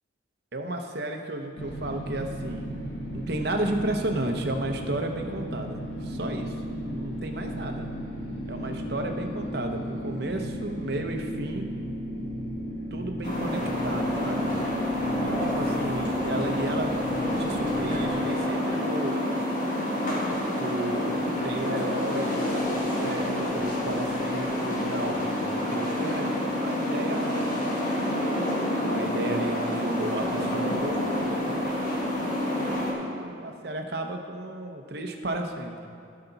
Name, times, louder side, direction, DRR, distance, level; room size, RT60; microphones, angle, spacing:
voice 1, 0.5-2.7 3.1-6.5 6.9-7.9 8.5-11.7 12.9-14.5 15.2-16.9 17.4-19.2 20.6-27.5 28.8-32.0 32.5-35.8, right 1 dB, 55° right, 4 dB, 0.8 m, -33 dB
sound 1, 1.6-18.1, equal, 70° left, 1.3 m, -35 dB
sound 2, 13.2-32.9, left 1 dB, 45° left, 2.0 m, -28 dB
16.0 x 5.8 x 4.0 m, 2.4 s
head